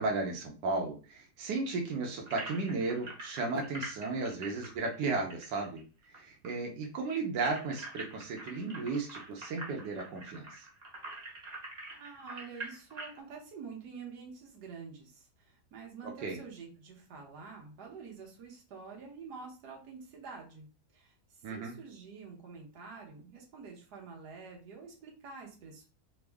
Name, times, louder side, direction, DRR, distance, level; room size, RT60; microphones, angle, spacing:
voice 1, 0.0-10.7 16.0-16.4 21.4-21.8, right 3 dB, 90° right, 1 dB, 1.3 m, -35 dB
sound 1, 2.3-6.2 6.4-6.5 6.8-13.2, right 2 dB, 30° right, 0.8 m, -45 dB
voice 2, 11.9-20.7 20.9-21.1 21.5-25.8, right 5 dB, 70° right, -1 dB, 1.5 m, -48 dB
3.5 x 2.0 x 3.4 m, 0.35 s
omnidirectional pair, 1.8 m